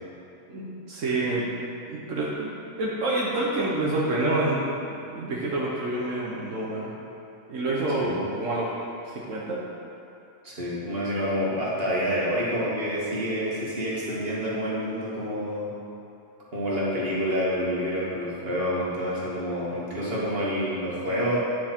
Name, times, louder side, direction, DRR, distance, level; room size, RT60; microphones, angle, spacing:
voice 1, 0.5-1.5 1.9-2.5 2.8-4.6 4.9-6.9 7.5-8.7 9.0-9.6, right 2 dB, 85° right, -5 dB, 1.4 m, -27 dB
voice 2, 8.0-8.3 10.4-15.7 16.5-21.4, equal, 50° right, -7 dB, 2.2 m, -28 dB
10.0 x 6.4 x 4.5 m, 2.8 s
omnidirectional pair, 1.3 m